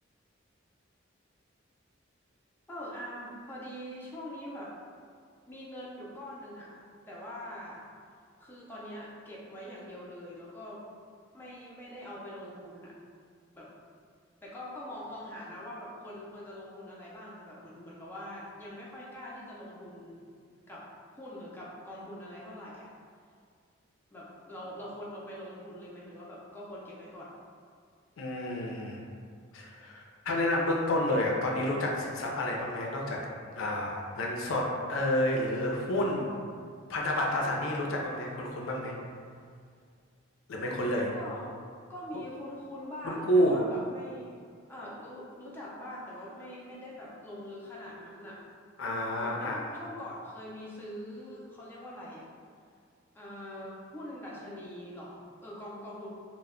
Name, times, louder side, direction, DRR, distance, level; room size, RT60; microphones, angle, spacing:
voice 1, 2.7-4.7 5.5-6.7 7.1-7.8 8.4-10.8 11.3-12.9 13.5-13.7 14.4-20.2 20.7-20.8 21.2-22.9 24.1-27.3 41.1-41.6 41.9-44.4 44.7-48.4 49.2-52.2 53.1-56.1, left 1 dB, 10° left, -7 dB, 0.4 m, -43 dB
voice 2, 28.2-29.0 29.5-33.3 33.5-36.3 36.9-38.9 40.5-41.1 43.0-43.7 48.8-49.6, left 1 dB, 80° left, -1 dB, 0.4 m, -29 dB
2.1 x 2.0 x 3.5 m, 2.1 s
head